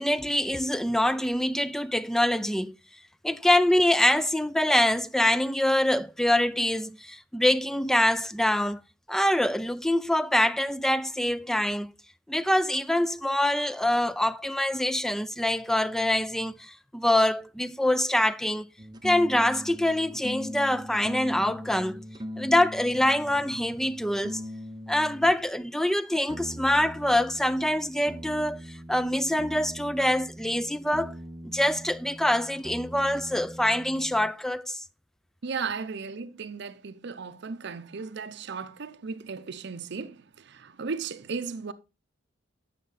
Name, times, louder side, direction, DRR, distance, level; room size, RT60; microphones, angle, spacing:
voice 1, 0.0-2.7 3.2-8.8 9.1-11.9 12.3-18.7 19.0-22.0 22.4-24.4 24.9-31.1 31.5-34.8, left 1 dB, ahead, 0.4 m, -25 dB
sound 1, 18.8-25.4 26.3-34.3, equal, 20° right, 0.8 m, -41 dB
voice 2, 35.4-41.7, right 5 dB, 65° right, 0.6 m, -36 dB
11.0 x 6.7 x 4.0 m
head